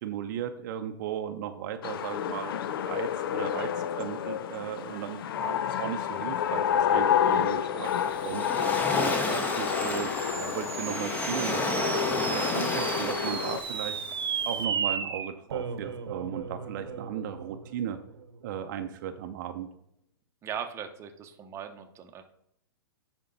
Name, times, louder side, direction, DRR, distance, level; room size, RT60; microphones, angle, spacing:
voice 1, 0.0-2.5 2.8-3.7 4.0-7.9 8.2-14.0 14.4-18.0 18.4-19.7, right 10 dB, 50° right, 7 dB, 0.6 m, -36 dB
sound 1, 1.8-13.6, left 9 dB, 65° left, 0.5 m, -29 dB
Waves surf, 7.8-14.6, left 2 dB, 15° left, 0.9 m, -32 dB
sound 2, 8.1-18.7, right 6 dB, 85° right, 1.0 m, -36 dB
voice 2, 20.4-22.2, right 8 dB, 20° right, 5 dB, 0.8 m, -39 dB
10.5 x 4.4 x 4.0 m, 0.78 s
hypercardioid pair, 130°, 13 cm